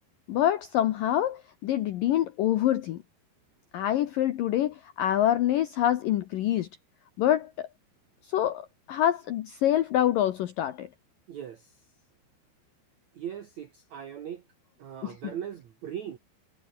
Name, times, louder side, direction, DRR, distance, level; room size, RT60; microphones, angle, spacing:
voice 1, 0.3-3.0 3.7-6.7 7.2-7.7 8.3-10.9 15.0-15.3, left 12 dB, 80° left, 2.0 m, -26 dB
voice 2, 11.3-11.8 13.1-14.4 14.8-16.2, right 9 dB, 70° right, 1.7 m, -39 dB
omnidirectional pair, 5.4 m